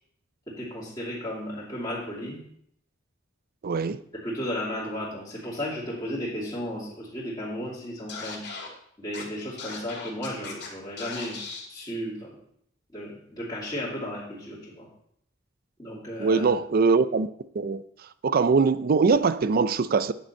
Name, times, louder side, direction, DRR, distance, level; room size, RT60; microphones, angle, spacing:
voice 1, 0.5-2.4 4.2-8.4 9.0-11.4 11.7-12.3 12.9-14.9 15.8-16.5, equal, 20° left, 2.6 m, -34 dB
voice 2, 3.6-4.0 16.2-17.3 17.5-17.8 18.2-20.1, right 4 dB, 50° right, 0.4 m, -22 dB
Scratching (performance technique), 8.1-8.7 9.1-9.2 9.6-10.7 11.0-11.7, left 4 dB, 55° left, 2.2 m, -38 dB
9.0 x 7.1 x 4.3 m
head